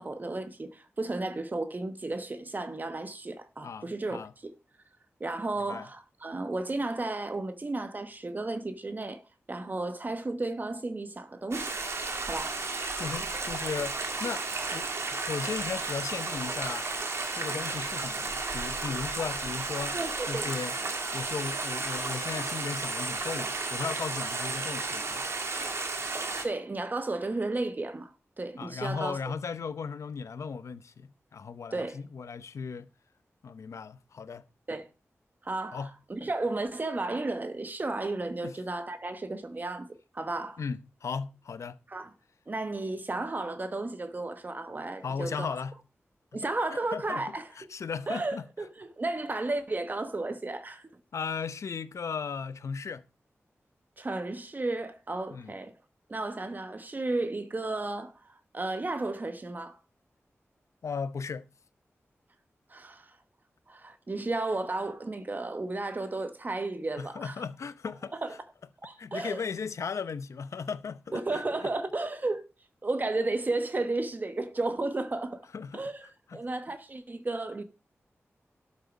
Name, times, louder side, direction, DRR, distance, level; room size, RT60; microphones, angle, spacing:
voice 1, 0.0-4.5 5.2-9.2 9.5-11.7 12.2-12.6 19.9-20.5 26.4-28.1 28.4-29.2 31.7-32.0 34.7-34.9 35.4-40.6 41.9-42.1 42.5-45.5 46.3-47.5 48.1-50.9 54.0-55.7 56.1-59.8 62.7-63.1 63.7-67.3 68.2-68.3 68.8-69.4 71.1-72.4 72.8-75.5 75.7-77.6, right 2 dB, 35° right, 1.0 m, -33 dB
voice 2, 3.6-4.3 5.7-5.9 13.0-16.9 17.3-20.0 20.3-20.8 21.1-25.2 28.6-32.9 33.4-34.5 35.7-35.9 38.4-38.5 40.6-41.8 45.0-45.8 46.3-46.4 46.9-48.4 51.1-53.0 55.3-55.5 60.8-61.5 67.0-68.1 69.0-71.4 75.5-75.8 76.3-76.4, left 5 dB, 85° left, 0.7 m, -36 dB
Stream, 11.5-26.4, right 3 dB, 65° right, 2.3 m, -33 dB
12.5 x 6.5 x 5.2 m
wide cardioid pair, 90°, 5 cm